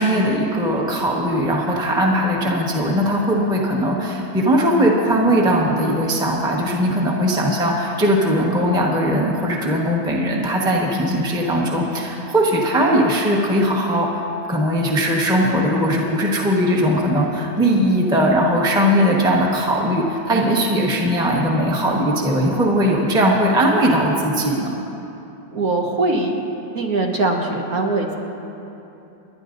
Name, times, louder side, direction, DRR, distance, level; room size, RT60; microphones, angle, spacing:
voice 1, 0.0-14.2 14.5-24.7, equal, 5° right, -2 dB, 0.9 m, -19 dB
voice 2, 25.5-26.3 26.7-28.1, right 2 dB, 55° right, 0 dB, 1.4 m, -21 dB
29.5 x 10.5 x 2.6 m, 3.0 s
omnidirectional pair, 2.1 m